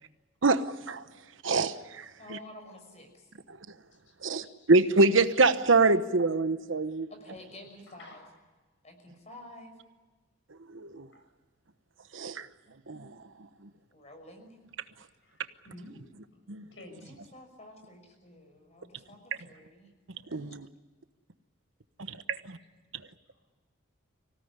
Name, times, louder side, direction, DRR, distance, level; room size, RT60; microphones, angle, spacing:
voice 1, 0.4-1.0 1.4-2.4 4.2-7.1 10.7-11.1 12.1-12.5 12.9-13.1 16.5-16.6 20.3-20.7 22.0-22.6, right 3 dB, 80° right, 10 dB, 1.1 m, -25 dB
voice 2, 2.2-3.3 7.1-8.3 8.8-9.8 13.9-14.6 17.0-19.9, left 1 dB, 35° left, 5 dB, 5.9 m, -50 dB
voice 3, 4.1-4.7 8.0-8.2 11.1-11.2 15.2-16.0 16.3-17.0, left 1 dB, 65° left, 7 dB, 6.8 m, -51 dB
25.5 x 17.5 x 9.8 m, 1.3 s
head